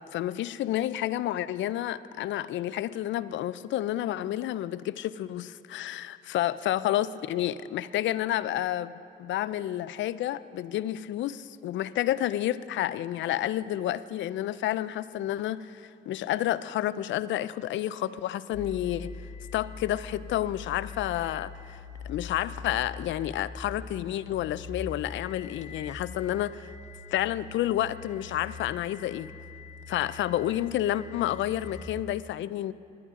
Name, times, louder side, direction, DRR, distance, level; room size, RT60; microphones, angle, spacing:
voice 1, 0.1-19.1 19.5-21.8 22.0-26.7 27.1-29.3 29.9-32.7, left 13 dB, 70° left, 16 dB, 0.4 m, -30 dB
sound 1, 18.5-32.0, left 4 dB, 35° left, 0.8 m, -43 dB
20.5 x 10.5 x 3.7 m, 2.5 s
cardioid pair, 90°, 20 cm